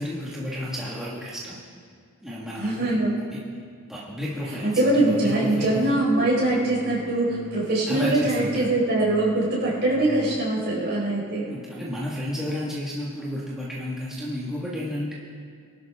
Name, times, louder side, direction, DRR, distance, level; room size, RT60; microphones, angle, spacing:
voice 1, 0.0-1.6 2.2-2.9 3.3-3.4 3.9-6.0 7.9-8.7 11.4-15.1, left 1 dB, ahead, -7 dB, 1.7 m, -32 dB
voice 2, 2.6-3.1 4.5-11.4, right 2 dB, 50° right, -5 dB, 4.6 m, -23 dB
sound 1, 4.8-10.4, equal, 25° right, 4.5 m, -44 dB
23.0 x 12.0 x 3.6 m, 2.1 s
head